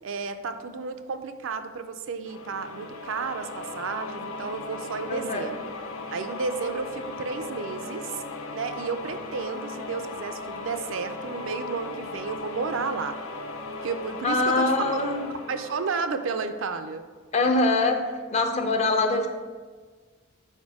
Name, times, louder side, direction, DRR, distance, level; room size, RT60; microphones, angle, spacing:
voice 1, 0.0-5.6 6.1-8.2 8.5-13.2 13.8-15.0 15.5-17.0, right 5 dB, 75° right, 8 dB, 0.4 m, -32 dB
sound 1, 2.2-16.9, left 3 dB, 90° left, 0.6 m, -38 dB
voice 2, 5.1-5.5 14.2-15.3 17.3-19.3, left 2 dB, 35° left, 5 dB, 0.5 m, -24 dB
5.0 x 4.3 x 4.8 m, 1.4 s
head